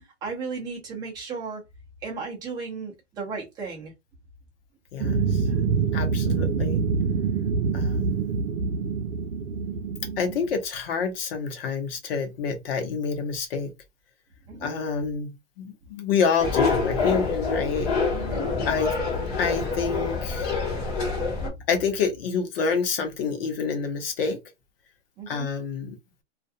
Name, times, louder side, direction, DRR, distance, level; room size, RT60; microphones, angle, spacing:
voice 1, 0.2-1.6 2.0-3.9 14.5-14.8 18.1-18.6 21.5-21.6 25.2-25.5, right 4 dB, 10° right, 0.6 m, -35 dB
voice 2, 4.9-5.4 5.9-6.8 7.7-8.3 10.2-13.7 14.6-17.9 18.6-18.9 19.4-20.5 21.7-24.4 25.3-26.0, left 5 dB, 55° left, 0.9 m, -27 dB
sound 1, 5.0-10.6, right 5 dB, 90° right, 0.6 m, -25 dB
sound 2, 16.4-21.5, left 4 dB, 25° left, 0.8 m, -26 dB
2.4 x 2.2 x 2.6 m
hypercardioid pair, 155°, 35 cm